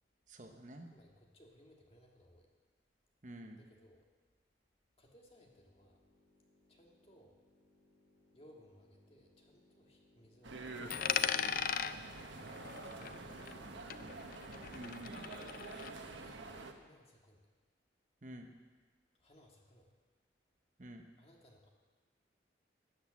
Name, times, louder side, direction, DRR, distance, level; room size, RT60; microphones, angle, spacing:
voice 1, 0.3-0.9 3.2-3.6 14.7-15.3 18.2-18.5 20.8-21.0, right 1 dB, 40° right, 5 dB, 0.9 m, -49 dB
voice 2, 0.9-2.5 3.6-4.0 5.0-6.0 6.7-7.4 8.3-11.0 12.4-14.1 15.2-17.5 19.2-19.9 21.2-21.7, equal, 30° left, 0 dB, 1.8 m, -63 dB
sound 1, 5.2-16.3, left 1 dB, 90° left, 2.6 m, -69 dB
sound 2, 10.4-16.7, right 3 dB, 85° right, 1.1 m, -48 dB
Coin (dropping), 10.9-13.7 13.9-15.9, left 8 dB, 50° left, 0.4 m, -38 dB
13.0 x 8.1 x 7.3 m, 1.4 s
head